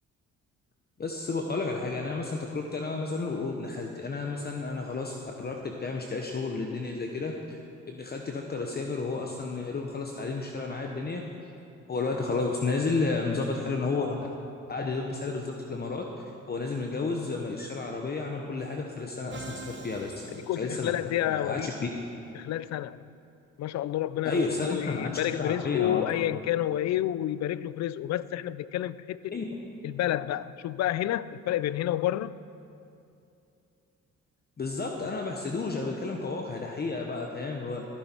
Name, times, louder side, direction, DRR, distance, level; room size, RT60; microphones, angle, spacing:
voice 1, 1.0-7.6 7.9-11.2 11.9-14.3 14.7-16.0 16.5-20.1 20.6-21.7 24.2-26.0 29.3-29.4 34.6-37.8, left 3 dB, 30° left, 2 dB, 1.0 m, -32 dB
Musical instrument, 19.3-21.4, right 4 dB, 40° right, 1.2 m, -45 dB
voice 2, 20.3-21.7 22.3-23.0 23.6-29.3 29.8-32.3, left 13 dB, 60° left, 17 dB, 0.4 m, -29 dB
15.0 x 10.0 x 4.5 m, 2.7 s
cardioid pair, 90°, 30 cm